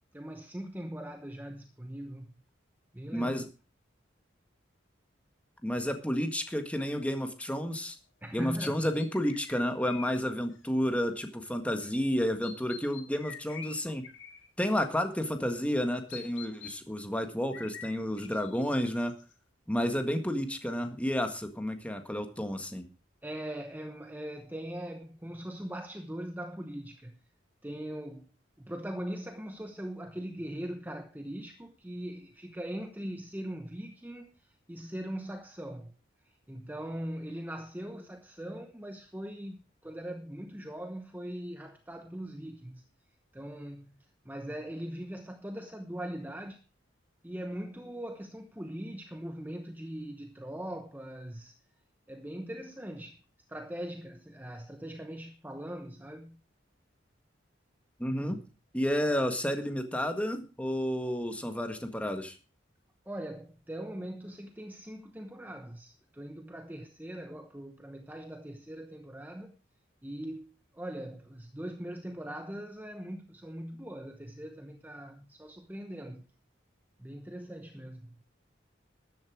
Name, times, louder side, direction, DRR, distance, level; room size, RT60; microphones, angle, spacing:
voice 1, 0.1-2.3 2.9-3.5 8.2-8.9 23.2-27.2 27.6-28.3 28.6-35.9 36.2-42.8 43.3-46.6 47.2-51.6 52.1-53.2 53.5-56.4 58.2-58.4 63.1-69.5 70.0-76.2 77.0-78.2, right 1 dB, 10° right, 0.9 m, -41 dB
voice 2, 3.1-3.4 5.6-8.0 8.3-14.0 14.6-19.1 19.7-22.9 58.0-58.4 58.7-62.4, equal, 5° left, 1.7 m, -31 dB
sound 1, 6.2-6.4 8.6-10.2 10.5-10.7 12.4-14.9 16.1-16.7 17.5-19.3, left 7 dB, 85° left, 2.0 m, -46 dB
13.5 x 11.0 x 4.7 m
head